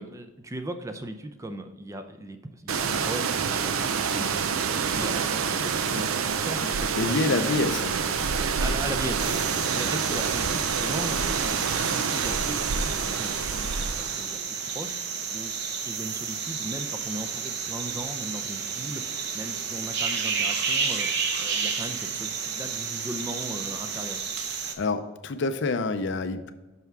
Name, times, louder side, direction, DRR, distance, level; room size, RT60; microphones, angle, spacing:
voice 1, 0.0-7.8 8.6-15.5 15.8-21.1 21.4-24.2, right 1 dB, 15° right, 8 dB, 0.5 m, -38 dB
sound 1, 2.7-14.4, right 6 dB, 75° right, 0.5 m, -27 dB
voice 2, 7.0-7.9 24.8-26.5, left 3 dB, 55° left, 10 dB, 0.5 m, -27 dB
sound 2, 9.2-24.7, right 6 dB, 50° right, 0.8 m, -31 dB
6.0 x 5.7 x 4.6 m, 1.1 s
head